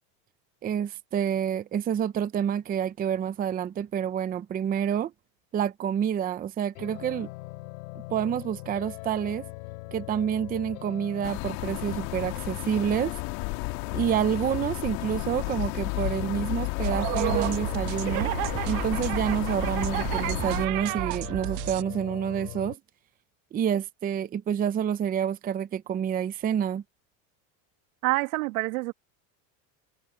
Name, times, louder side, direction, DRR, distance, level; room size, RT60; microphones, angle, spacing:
voice 1, 0.6-5.1 5.5-7.3 8.1-9.5 9.9-13.2 13.9-18.3 18.7-22.8 23.5-26.8, right 9 dB, 20° right, 0.6 m, -28 dB
sound 1, 6.8-22.7, left 23 dB, 80° left, 3.5 m, -41 dB
sound 2, 11.2-20.7, left 25 dB, 65° left, 2.4 m, -33 dB
sound 3, 16.8-21.8, right 23 dB, 65° right, 1.1 m, -31 dB
voice 2, 28.0-28.9, right 21 dB, 85° right, 2.0 m, -27 dB
supercardioid pair, 140°, 42 cm